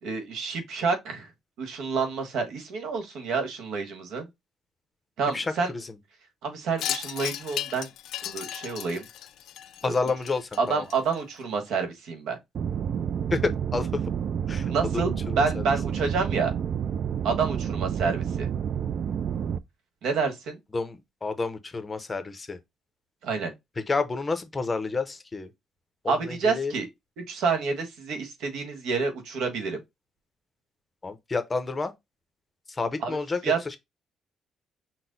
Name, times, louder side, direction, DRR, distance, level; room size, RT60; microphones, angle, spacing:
voice 1, 0.0-1.3 1.6-4.3 5.2-5.7 6.4-7.9 8.2-9.1 9.8-9.9 10.6-12.4 14.7-16.5 17.2-18.5 20.0-20.6 23.2-23.5 26.1-26.9 27.3-29.8 33.0-33.2 33.4-33.8, right 5 dB, 85° right, 1.3 m, -28 dB
voice 2, 5.3-5.9 9.8-10.9 13.3-14.0 14.5-15.6 20.7-22.6 23.9-25.5 26.0-26.7 31.0-31.9 32.7-33.8, left 4 dB, 20° left, 0.6 m, -30 dB
Wind chime, 6.8-11.4, left 11 dB, 85° left, 0.4 m, -36 dB
Facility Hum Ambience Loopable, 12.5-19.6, right 8 dB, 50° right, 0.3 m, -29 dB
6.0 x 2.1 x 3.9 m
cardioid pair, 165°, 0 cm